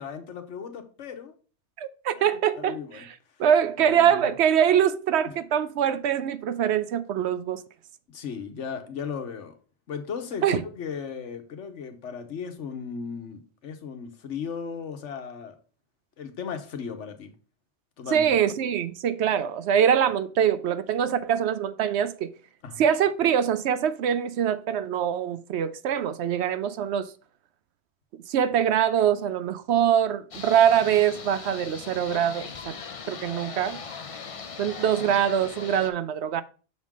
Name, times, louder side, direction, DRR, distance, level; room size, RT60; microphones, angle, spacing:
voice 1, 0.0-1.3 2.1-3.1 3.8-4.2 8.1-9.5 9.9-15.5 16.2-17.3 18.0-18.3 22.6-22.8, left 6 dB, 80° left, 1.3 m, -36 dB
voice 2, 1.8-3.1 3.4-7.6 10.4-10.6 18.1-22.3 22.8-27.1 28.3-32.8 33.1-33.8 34.6-36.4, right 9 dB, 70° right, 0.8 m, -23 dB
sound 1, 30.3-35.9, left 5 dB, 40° left, 0.6 m, -39 dB
6.3 x 3.6 x 6.1 m
omnidirectional pair, 1.2 m